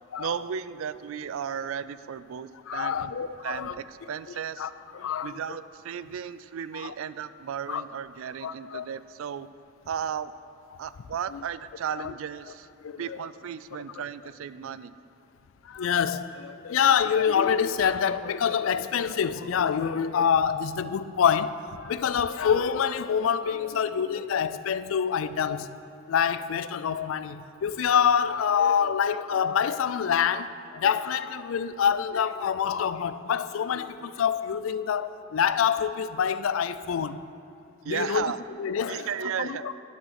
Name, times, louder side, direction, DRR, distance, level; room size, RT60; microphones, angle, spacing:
voice 1, 0.2-4.7 5.2-9.5 9.9-10.3 10.8-12.7 13.0-14.9 37.8-38.4 38.9-39.7, right 8 dB, 80° right, 0.3 m, -35 dB
voice 2, 2.7-3.8 4.6-5.4 6.8-6.9 7.7-7.8 8.4-8.9 11.3-11.4 12.0-12.1 12.8-13.2 15.6-25.7 26.1-37.2 37.9-38.3 38.6-39.7, left 7 dB, 75° left, 0.4 m, -26 dB
10.5 x 6.3 x 5.9 m
head